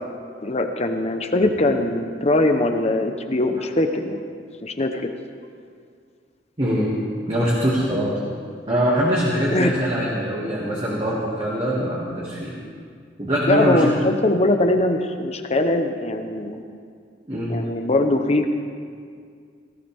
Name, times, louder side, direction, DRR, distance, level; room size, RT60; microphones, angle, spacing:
voice 1, 0.4-4.2 4.6-5.1 9.5-9.7 13.5-16.6 17.5-18.5, left 2 dB, 35° left, 6 dB, 1.0 m, -21 dB
voice 2, 6.6-7.0 7.3-8.2 8.7-12.6 13.2-13.8 17.3-17.5, equal, 30° right, -6 dB, 2.2 m, -23 dB
18.0 x 16.5 x 3.6 m, 2.2 s
head